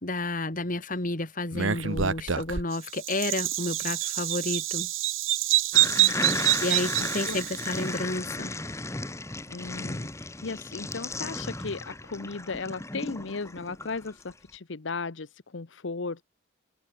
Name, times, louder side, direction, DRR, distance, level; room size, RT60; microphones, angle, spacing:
voice 1, 0.0-4.9 6.2-8.5, left 2 dB, 40° left, 2.3 m, -31 dB
Bird vocalization bird call bird song, 1.5-7.8, right 12 dB, 80° right, 1.4 m, -26 dB
sound 1, 5.7-14.3, left 2 dB, 15° left, 1.1 m, -35 dB
voice 2, 6.0-6.5 7.0-7.4 9.5-16.3, left 4 dB, 65° left, 0.9 m, -36 dB
open air
head